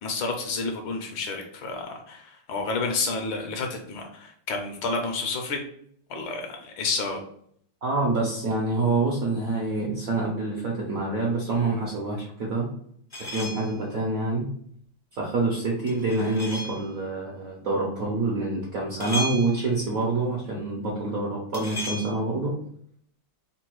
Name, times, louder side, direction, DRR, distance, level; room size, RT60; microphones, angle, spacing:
voice 1, 0.0-5.6 6.1-7.2, left 3 dB, 70° left, 3 dB, 1.4 m, -30 dB
voice 2, 7.8-12.7 13.3-14.5 15.1-22.5, right 3 dB, 65° right, -3 dB, 0.8 m, -26 dB
sound 1, 13.1-13.9 15.9-16.9 19.0-19.9 21.5-22.1, left 1 dB, 25° left, 0.5 m, -34 dB
3.8 x 2.2 x 4.5 m, 0.64 s
omnidirectional pair, 2.4 m